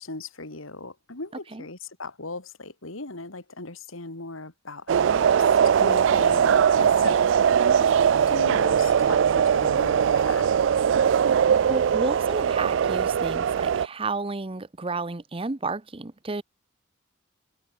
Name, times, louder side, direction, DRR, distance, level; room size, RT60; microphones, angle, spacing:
voice 1, 0.0-5.4 5.7-7.4 7.7-10.5, left 3 dB, 80° left, 2.9 m, -38 dB
sound 1, 4.9-13.9, right 8 dB, 60° right, 0.3 m, -21 dB
voice 2, 11.7-16.4, right 3 dB, 25° right, 0.7 m, -31 dB
head